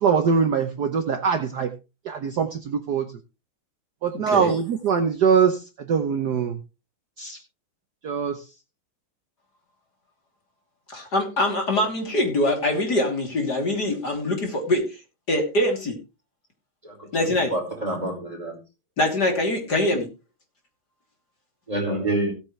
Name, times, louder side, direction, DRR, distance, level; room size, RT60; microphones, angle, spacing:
voice 1, 0.0-1.7 2.0-3.1 4.0-6.6 7.2-7.4 8.0-8.4, right 6 dB, 55° right, 6 dB, 1.4 m, -23 dB
voice 2, 4.1-4.5 10.9-15.0 15.3-16.0 17.1-17.6 19.0-20.1, left 1 dB, 45° left, 2 dB, 3.6 m, -23 dB
voice 3, 16.8-18.6 21.7-22.3, right 1 dB, 15° right, 1 dB, 4.7 m, -28 dB
17.0 x 9.0 x 3.2 m, 0.28 s
omnidirectional pair, 2.4 m